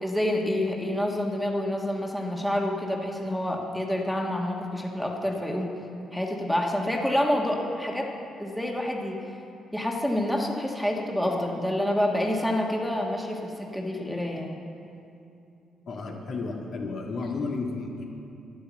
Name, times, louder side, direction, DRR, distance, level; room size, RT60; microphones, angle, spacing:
voice 1, 0.0-5.7 6.1-8.1 8.4-9.2 9.7-14.6, left 1 dB, 5° left, 0 dB, 1.4 m, -28 dB
voice 2, 15.9-18.0, left 3 dB, 60° left, 0 dB, 1.9 m, -32 dB
10.5 x 10.0 x 7.2 m, 2.7 s
cardioid pair, 90°, 0 cm